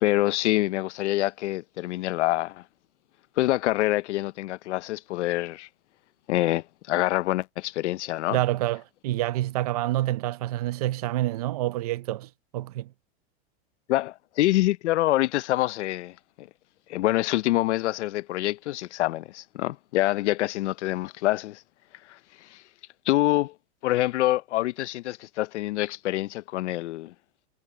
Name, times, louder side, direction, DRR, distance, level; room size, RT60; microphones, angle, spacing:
voice 1, 0.0-2.6 3.4-5.7 6.3-8.4 13.9-16.5 16.9-21.6 23.1-23.5 23.8-27.1, left 16 dB, 80° left, 0.7 m, -26 dB
voice 2, 8.3-12.9, right 15 dB, 35° right, 0.5 m, -28 dB
supercardioid pair, 180°, 34 cm